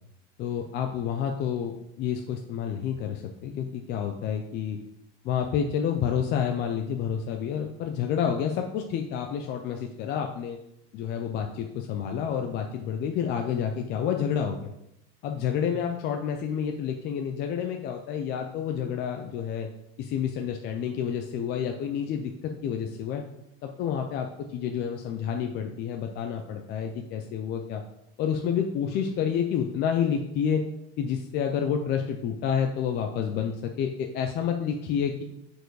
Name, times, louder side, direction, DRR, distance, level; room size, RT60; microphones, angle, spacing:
voice 1, 0.4-4.8 5.2-10.6 10.9-14.7 15.2-19.7 20.0-23.2 23.6-27.8 28.2-30.6 31.0-35.2, left 8 dB, 35° left, 4 dB, 0.4 m, -29 dB
6.6 x 4.6 x 4.7 m, 0.83 s
cardioid pair, 160°, 32 cm